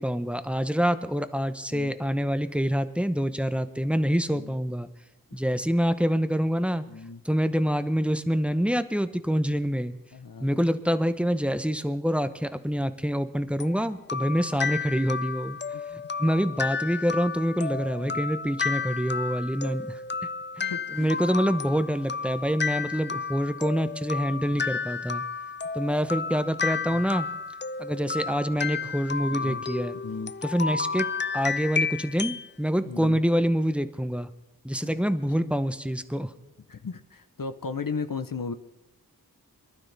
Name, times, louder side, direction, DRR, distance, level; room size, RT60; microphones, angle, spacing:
voice 1, 0.0-4.9 5.3-6.8 7.2-9.9 10.4-15.6 15.9-20.0 20.6-25.2 25.7-27.3 27.8-30.0 30.4-31.1 31.3-34.3 34.6-36.3, equal, 5° right, 11 dB, 0.8 m, -26 dB
voice 2, 6.9-7.2 10.1-10.6 15.7-15.8 18.0-18.2 20.7-21.1 26.8-27.1 29.2-29.6 29.9-30.3 32.9-33.2 34.8-35.0 35.4-35.5 36.7-38.5, left 4 dB, 65° left, 10 dB, 0.8 m, -36 dB
sound 1, 13.6-32.5, left 5 dB, 30° left, 0.5 m, -32 dB
23.5 x 12.0 x 3.4 m, 0.88 s
wide cardioid pair, 50°, 36 cm